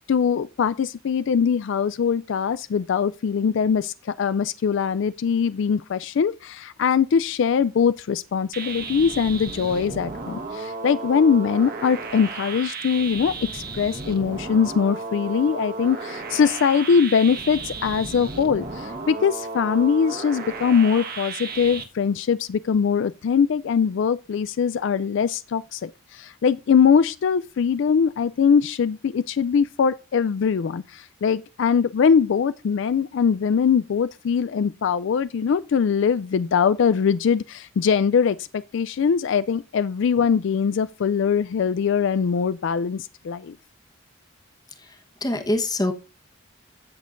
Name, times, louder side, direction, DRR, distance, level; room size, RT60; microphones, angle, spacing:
voice 1, 0.0-43.6, left 6 dB, 60° left, 0.3 m, -22 dB
sound 1, 8.5-21.8, right 3 dB, 45° right, 1.4 m, -34 dB
voice 2, 44.8-45.9, left 1 dB, 20° left, 1.1 m, -26 dB
15.5 x 6.2 x 2.6 m
head